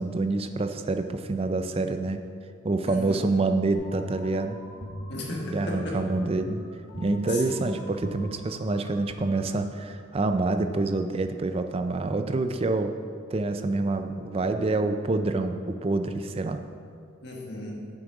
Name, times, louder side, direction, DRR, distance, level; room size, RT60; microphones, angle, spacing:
voice 1, 0.0-2.2 2.6-4.6 5.5-6.6 7.0-12.9 13.3-16.6, right 2 dB, 30° right, 8 dB, 0.4 m, -27 dB
voice 2, 2.8-3.2 5.1-6.0 7.3-7.7 17.2-17.7, left 1 dB, 55° left, -2 dB, 1.5 m, -35 dB
sound 1, 3.7-10.1, equal, 75° left, 1.5 m, -41 dB
7.6 x 6.3 x 4.9 m, 2.3 s
head